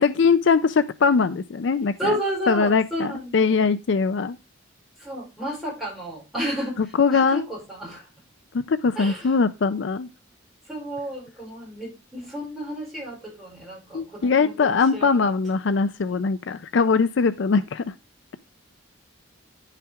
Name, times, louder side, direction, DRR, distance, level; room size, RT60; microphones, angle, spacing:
voice 1, 0.0-2.1 2.5-4.4 6.8-7.4 8.7-10.1 13.9-17.8, left 5 dB, 60° left, 0.4 m, -21 dB
voice 2, 2.0-3.7 5.0-6.8 7.1-8.1 9.0-9.3 10.7-15.2, right 1 dB, ahead, 5.6 m, -32 dB
10.0 x 5.7 x 3.5 m
head